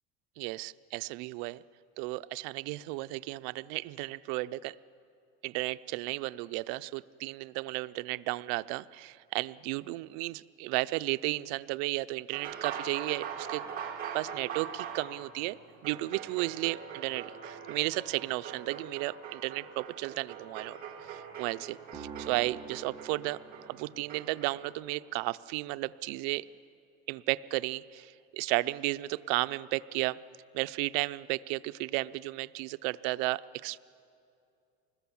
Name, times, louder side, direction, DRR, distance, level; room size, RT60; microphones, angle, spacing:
voice 1, 0.4-1.6 2.0-4.7 5.4-13.7 14.1-15.6 15.8-23.4 23.7-26.5 27.1-30.2 30.5-33.8, right 20 dB, 75° right, 15 dB, 0.6 m, -34 dB
sound 1, 12.3-24.6, right 7 dB, 30° right, 2.3 m, -42 dB
sound 2, 21.9-24.3, right 5 dB, 10° right, 1.3 m, -46 dB
26.0 x 20.5 x 7.1 m, 2.5 s
cardioid pair, 180°, 29 cm